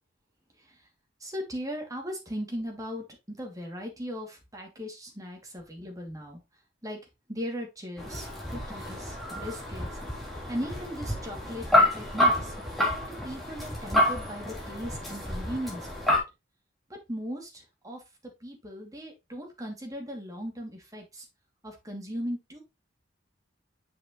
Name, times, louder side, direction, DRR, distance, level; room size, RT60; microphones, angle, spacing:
voice 1, 1.2-3.0 3.4-6.4 6.8-7.0 7.3-9.9 10.5-12.5 13.1-16.2 17.1-18.0 18.4-21.3 21.6-22.6, equal, 20° right, 1 dB, 2.6 m, -38 dB
sound 1, 8.0-16.2, left 1 dB, ahead, 3.2 m, -28 dB
7.2 x 6.4 x 3.1 m, 0.23 s
head